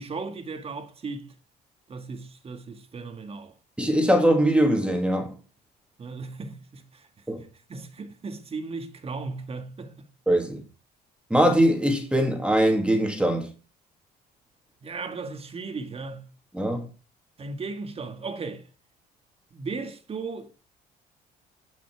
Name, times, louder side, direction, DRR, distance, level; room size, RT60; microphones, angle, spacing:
voice 1, 0.0-1.3 1.9-3.6 6.0-7.1 7.7-10.1 14.8-16.3 17.4-18.7 19.5-20.5, right 4 dB, 35° right, 1.9 m, -36 dB
voice 2, 3.8-5.3 7.3-7.4 10.3-10.6 11.3-13.5 16.5-16.9, right 1 dB, 5° right, 2.6 m, -22 dB
17.0 x 6.0 x 4.8 m
cardioid pair, 110°, 17 cm